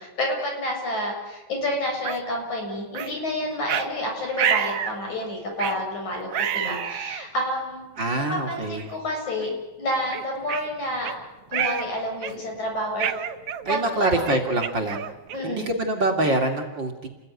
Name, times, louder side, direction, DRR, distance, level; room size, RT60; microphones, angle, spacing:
voice 1, 0.0-7.9 8.3-9.5 9.8-11.1 11.5-13.1 13.6-14.4 14.9-15.0 15.3-15.7, left 1 dB, 70° left, 1 dB, 8.7 m, -29 dB
sound 1, 2.0-2.2 2.9-3.1 3.7-3.9 4.4-5.0 5.6-5.8 6.3-7.2 8.0-8.1 8.8-9.0 9.4-9.5 10.1-11.2 11.5-11.9 12.2-12.5 13.0-15.6, right 9 dB, 60° right, 1.9 m, -28 dB
voice 2, 8.0-8.9 13.6-15.0 15.4-17.1, right 2 dB, 40° right, 2 dB, 3.0 m, -25 dB
29.5 x 20.5 x 9.7 m, 1.0 s
omnidirectional pair, 3.5 m